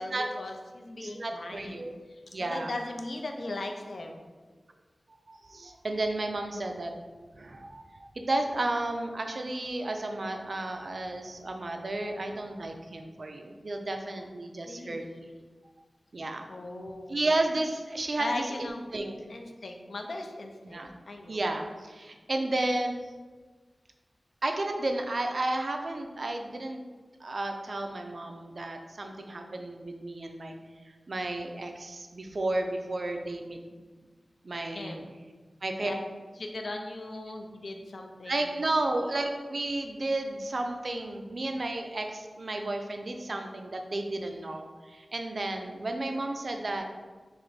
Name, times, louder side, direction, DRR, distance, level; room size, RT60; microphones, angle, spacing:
voice 1, 0.0-1.8 2.1-4.3 14.6-15.4 16.5-17.2 18.2-18.9 19.3-21.4 34.7-35.1 35.8-36.0 36.4-38.5, left 2 dB, 65° left, 3 dB, 0.4 m, -38 dB
voice 2, 1.0-1.9 2.3-2.7 5.3-7.0 7.3-15.0 16.1-16.5 17.1-19.1 20.6-20.9 21.3-23.0 24.4-26.8 27.2-30.5 31.1-33.6 34.4-35.0 35.6-35.9 38.3-46.8, right 2 dB, 55° right, 4 dB, 0.3 m, -32 dB
3.3 x 2.5 x 3.9 m, 1.4 s
wide cardioid pair, 85°, 0 cm